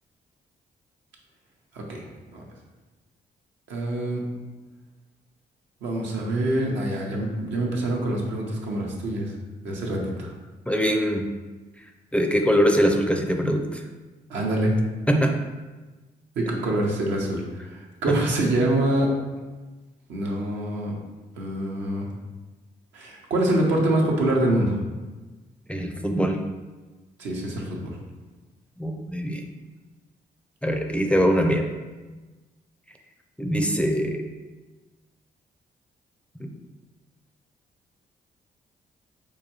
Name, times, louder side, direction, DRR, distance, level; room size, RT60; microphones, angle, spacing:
voice 1, 1.7-2.0 2.3-2.4 3.7-4.2 5.8-9.3 9.6-10.3 14.3-14.8 16.4-19.1 20.1-20.9 21.4-22.1 22.9-24.8 27.2-28.0, right 1 dB, 75° right, -1 dB, 0.8 m, -25 dB
voice 2, 10.7-11.3 12.1-13.8 15.1-15.3 25.7-26.4 28.8-29.5 30.6-31.7 33.4-34.2 36.4-36.5, equal, 5° left, 3 dB, 0.5 m, -22 dB
4.7 x 2.3 x 3.0 m, 1.2 s
hypercardioid pair, 50°, 19 cm